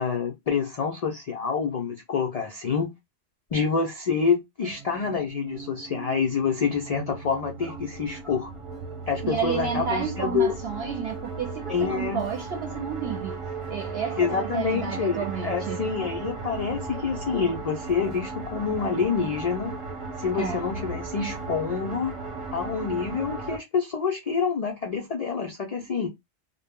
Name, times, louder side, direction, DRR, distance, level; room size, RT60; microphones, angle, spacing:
voice 1, 0.0-2.9 3.5-8.5 9.1-10.5 11.7-12.2 14.2-19.7 20.2-22.1 22.5-26.1, left 6 dB, 80° left, 0.3 m, -27 dB
sound 1, 4.6-23.6, right 4 dB, 30° right, 0.7 m, -36 dB
voice 2, 9.2-13.4 13.7-15.9 20.3-20.6 25.8-25.9, right 7 dB, 65° right, 0.7 m, -31 dB
2.0 x 2.0 x 3.4 m
omnidirectional pair, 1.2 m